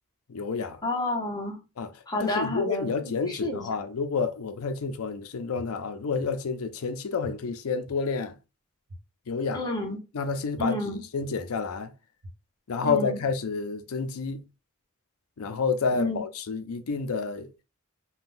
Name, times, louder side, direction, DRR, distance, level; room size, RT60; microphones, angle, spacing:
voice 1, 0.3-0.8 1.8-1.9 2.2-8.4 9.3-9.6 10.1-10.8 11.1-11.9 12.7-14.4 15.4-17.6, left 5 dB, 75° left, 0.5 m, -29 dB
voice 2, 0.8-1.6 2.1-3.7 9.5-10.0 10.6-11.0 12.8-13.2 15.9-16.2, left 2 dB, 20° left, 0.8 m, -30 dB
sound 1, 5.6-5.7 6.2-6.3 7.2-7.3 7.9-8.0 8.9-9.0 9.5-9.6 10.6-10.7 11.2-11.3 12.2-12.3 12.9-13.0, equal, 90° right, 0.9 m, -43 dB
3.6 x 2.2 x 2.5 m
head